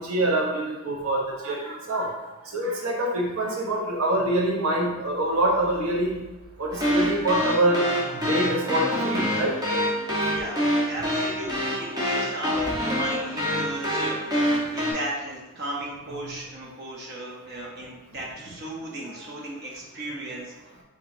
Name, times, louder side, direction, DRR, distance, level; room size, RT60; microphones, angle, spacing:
voice 1, 0.0-2.1 2.5-6.2 6.6-7.8 8.2-9.5 19.1-19.2, right 1 dB, 75° right, -1 dB, 0.8 m, -25 dB
sound 1, 6.7-14.9, equal, 15° right, 1.0 m, -26 dB
voice 2, 10.2-20.5, right 1 dB, 50° right, -3 dB, 0.8 m, -36 dB
4.7 x 4.1 x 2.6 m, 1.1 s
head